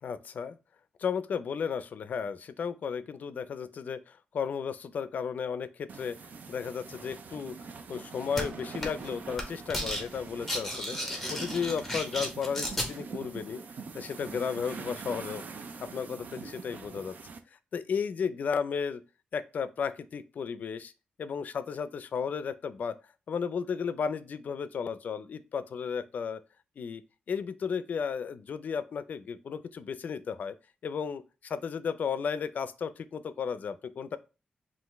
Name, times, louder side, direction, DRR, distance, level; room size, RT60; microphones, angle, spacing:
voice 1, 0.0-0.6 1.0-6.2 6.5-7.6 7.9-11.0 11.3-13.6 13.9-15.4 15.8-17.2 17.7-19.0 19.3-20.9 21.2-23.0 23.3-26.4 26.8-27.0 27.3-30.5 30.8-34.2, left 6 dB, 60° left, 0.4 m, -34 dB
sound 1, 5.9-17.4, right 5 dB, 60° right, 0.5 m, -44 dB
sound 2, 8.4-8.5 8.8-9.1 9.3-10.0 10.3-12.9, equal, ahead, 1.1 m, -33 dB
5.6 x 2.6 x 3.1 m
wide cardioid pair, 140°, 3 cm